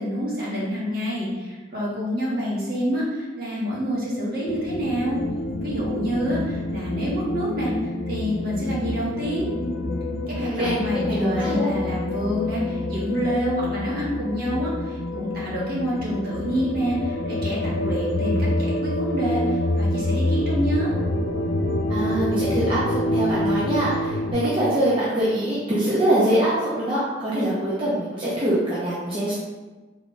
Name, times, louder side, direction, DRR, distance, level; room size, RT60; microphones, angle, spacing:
voice 1, 0.0-5.2 5.6-9.5 10.3-21.0, equal, 55° right, -6 dB, 1.3 m, -27 dB
sound 1, 4.5-24.3, left 1 dB, 75° left, 0.4 m, -27 dB
voice 2, 10.3-10.8 11.0-11.7 21.9-29.3, right 1 dB, 25° right, -9 dB, 0.7 m, -23 dB
3.6 x 2.4 x 3.8 m, 1.2 s
head